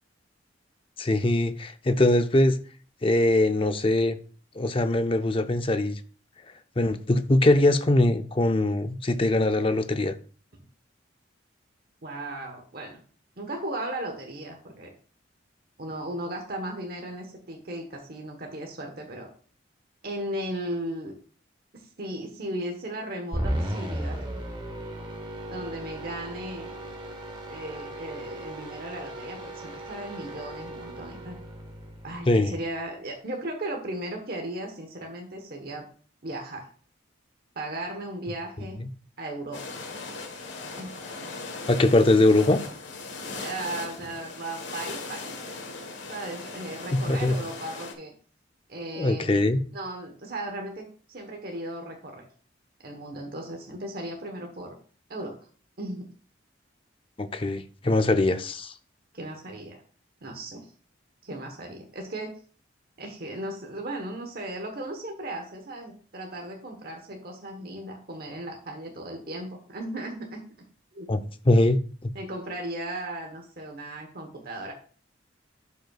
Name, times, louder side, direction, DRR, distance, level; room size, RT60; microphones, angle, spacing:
voice 1, 1.0-2.6 3.0-4.2 4.6-6.0 6.8-10.1 32.3-32.6 38.8-38.9 41.7-42.6 47.1-47.4 48.9-49.6 57.2-58.7 71.1-72.1, left 2 dB, 30° left, 9 dB, 0.5 m, -22 dB
voice 2, 12.0-13.0 13.4-14.9 15.8-19.3 20.0-21.1 21.7-24.2 25.5-26.7 27.5-31.4 32.0-35.8 36.2-36.7 37.5-38.8 39.2-39.6 40.8-40.9 43.3-45.6 46.1-48.1 48.7-52.3 52.8-54.8 55.1-55.4 55.8-56.1 59.1-59.8 60.2-60.7 61.2-62.3 63.0-70.4 70.9-71.2 72.1-74.7, right 1 dB, 50° right, 2 dB, 1.1 m, -36 dB
sound 1, 23.3-32.7, right 1 dB, 25° right, 1.1 m, -36 dB
sound 2, 39.5-47.9, left 3 dB, 70° left, 1.4 m, -38 dB
11.5 x 5.4 x 2.4 m, 0.42 s
head